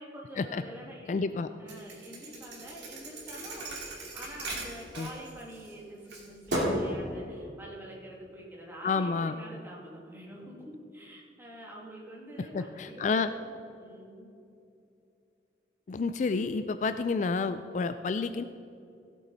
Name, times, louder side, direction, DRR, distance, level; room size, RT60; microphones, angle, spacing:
voice 1, 0.0-1.2 1.6-13.4 13.8-14.3, equal, 15° right, -4 dB, 2.4 m, -46 dB
voice 2, 1.1-1.5 5.0-5.1 8.8-9.4 12.5-13.3 15.9-18.4, left 4 dB, 45° left, 10 dB, 0.3 m, -29 dB
Thump thud, 1.7-5.7 6.1-6.9, right 1 dB, 75° right, 2.6 m, -35 dB
16.0 x 8.3 x 4.1 m, 2.7 s
head